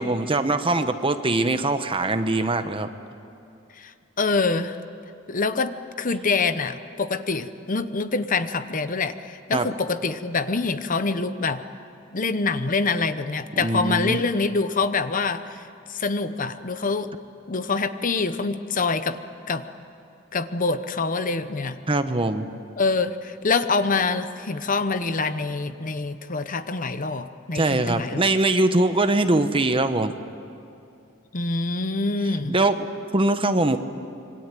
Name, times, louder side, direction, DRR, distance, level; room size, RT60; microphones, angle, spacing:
voice 1, 0.0-2.9 9.5-9.7 13.6-14.2 21.9-22.5 27.5-30.1 32.5-33.8, right 2 dB, 25° right, 9 dB, 1.0 m, -22 dB
voice 2, 4.2-4.8 5.3-5.7 6.0-11.6 12.1-15.6 15.9-17.1 17.5-19.2 19.5-19.6 20.3-21.8 22.8-28.2 31.3-32.5, left 4 dB, 40° left, 11 dB, 0.9 m, -25 dB
26.5 x 23.5 x 9.1 m, 2.6 s
head